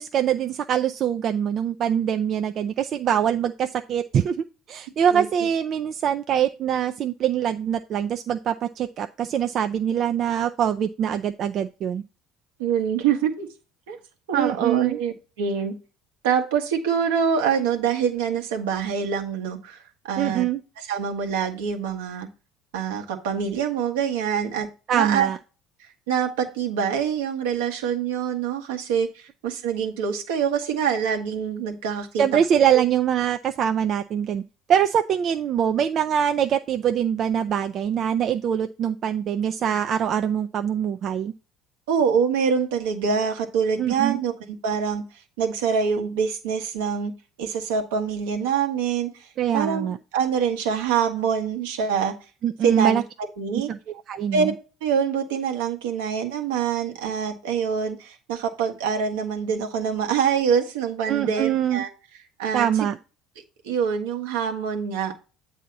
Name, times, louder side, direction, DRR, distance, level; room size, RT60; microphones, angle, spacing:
voice 1, 0.0-4.4 4.7-12.0 14.3-15.0 20.2-20.6 24.9-25.4 32.2-34.4 34.7-41.3 43.8-44.2 49.4-50.0 52.4-53.0 53.7-53.8 54.1-54.5 61.1-61.8 62.5-63.0, right 9 dB, 50° right, 7 dB, 0.3 m, -23 dB
voice 2, 12.6-13.5 13.9-14.0 14.3-15.8 16.2-20.4 20.8-22.3 22.7-25.3 26.1-32.2 32.7-32.8 41.9-45.0 45.4-47.1 47.4-49.3 49.5-52.1 52.6-53.0 53.4-53.7 54.3-54.5 54.8-61.9 62.4-62.9 63.6-65.1, right 7 dB, 80° right, 4 dB, 1.0 m, -25 dB
8.2 x 2.8 x 5.8 m, 0.33 s
hypercardioid pair, 70°, 0 cm